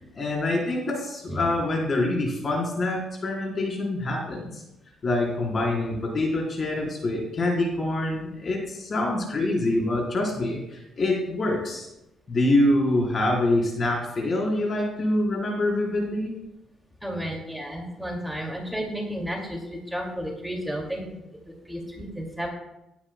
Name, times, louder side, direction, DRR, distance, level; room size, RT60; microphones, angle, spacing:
voice 1, 0.1-4.6 5.0-11.9 12.3-16.3, left 1 dB, 45° left, -2 dB, 4.2 m, -25 dB
voice 2, 17.0-19.6 19.9-22.5, equal, 5° right, 0 dB, 2.4 m, -32 dB
18.5 x 9.6 x 2.3 m, 0.89 s
cardioid pair, 90°, 0 cm